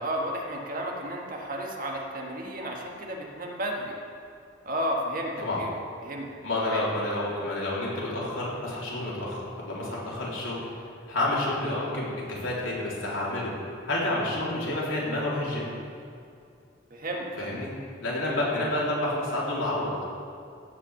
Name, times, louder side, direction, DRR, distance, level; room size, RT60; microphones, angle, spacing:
voice 1, 0.0-4.0 4.6-5.3 5.6-5.7 6.0-6.3 6.6-6.8 16.9-17.4 18.3-18.4, right 1 dB, 45° right, 0 dB, 1.7 m, -32 dB
voice 2, 6.4-10.6 11.1-13.5 13.9-15.7 17.4-17.7 18.0-19.9, left 1 dB, 85° left, -5 dB, 3.6 m, -29 dB
16.5 x 5.8 x 7.2 m, 2.5 s
head